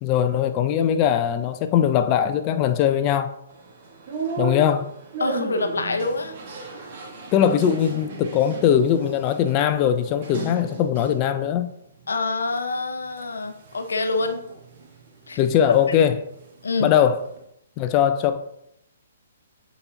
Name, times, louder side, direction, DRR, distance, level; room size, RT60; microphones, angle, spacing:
voice 1, 0.0-3.3 4.4-4.9 7.3-11.7 15.4-16.2 16.8-17.2 17.8-18.4, left 9 dB, 30° left, 0.5 m, -20 dB
sound 1, 3.5-11.4 11.8-12.6 13.1-16.0 16.2-17.4, right 4 dB, 50° right, 1.4 m, -36 dB
voice 2, 5.2-6.3 12.1-14.4 15.3-15.4 16.6-16.9, left 3 dB, 75° left, 0.7 m, -26 dB
8.0 x 4.1 x 2.9 m
figure-of-eight pair, 130°, 0 cm